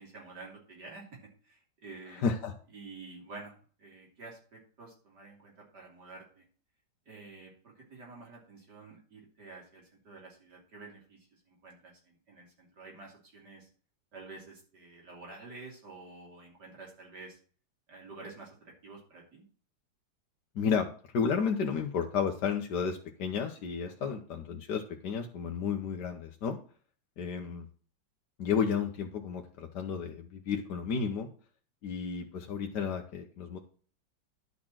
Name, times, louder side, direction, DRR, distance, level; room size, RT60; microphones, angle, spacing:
voice 1, 0.0-2.3 2.7-6.4 7.1-13.7 14.1-17.4 17.9-19.4 24.0-24.2, right 3 dB, 65° right, -2 dB, 3.5 m, -49 dB
voice 2, 2.2-2.5 20.5-26.6 27.2-27.7 28.4-31.3 31.8-33.6, left 6 dB, 70° left, 2 dB, 1.6 m, -32 dB
11.0 x 4.2 x 7.3 m, 0.41 s
omnidirectional pair, 1.9 m